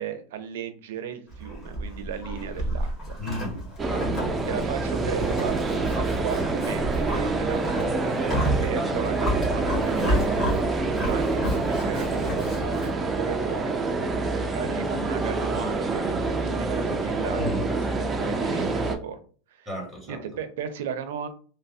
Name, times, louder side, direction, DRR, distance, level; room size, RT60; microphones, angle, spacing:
voice 1, 0.0-3.2 4.5-8.3 8.6-13.8 14.3-19.2 19.5-19.7 20.1-21.3, right 8 dB, 80° right, 0.5 m, -36 dB
Livestock farm animals working animals, 1.3-13.0, right 1 dB, 25° left, 1.4 m, -31 dB
voice 2, 3.2-4.3 17.4-17.6 18.4-18.8 19.6-20.2, equal, 5° left, 1.0 m, -34 dB
sound 1, 3.8-19.0, right 3 dB, 15° right, 0.3 m, -26 dB
3.2 x 2.0 x 2.6 m
supercardioid pair, 150°, 0 cm